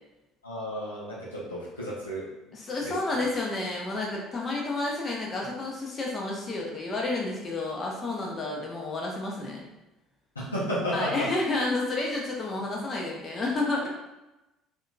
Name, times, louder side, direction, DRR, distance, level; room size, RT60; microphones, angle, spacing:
voice 1, 0.4-2.2 2.8-2.9 10.4-11.3, equal, 85° left, -7 dB, 0.6 m, -32 dB
voice 2, 2.5-9.7 10.9-13.9, left 2 dB, 35° left, -2 dB, 0.7 m, -30 dB
2.7 x 2.6 x 2.2 m, 0.98 s
figure-of-eight pair, 55°, 0 cm